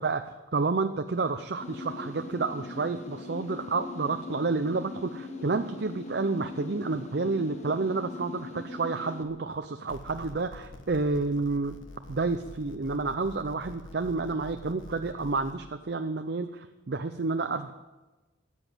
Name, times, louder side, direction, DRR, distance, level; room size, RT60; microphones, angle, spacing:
voice 1, 0.0-11.8 12.1-17.7, right 3 dB, 55° right, 8 dB, 0.6 m, -30 dB
sound 1, 1.6-9.2, left 3 dB, 35° left, 1.1 m, -41 dB
sound 2, 9.9-15.5, left 1 dB, 85° left, 1.4 m, -46 dB
14.0 x 8.1 x 9.0 m, 1.1 s
head